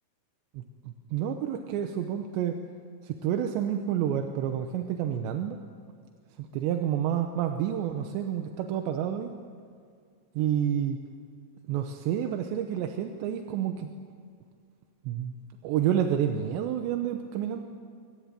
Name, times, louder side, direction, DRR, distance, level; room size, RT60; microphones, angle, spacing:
voice 1, 0.5-2.6 3.0-5.6 6.4-9.3 10.4-11.0 11.7-13.9 15.0-15.3 15.6-17.6, right 9 dB, 80° right, 6 dB, 3.1 m, -29 dB
23.5 x 19.0 x 9.0 m, 2.2 s
omnidirectional pair, 5.2 m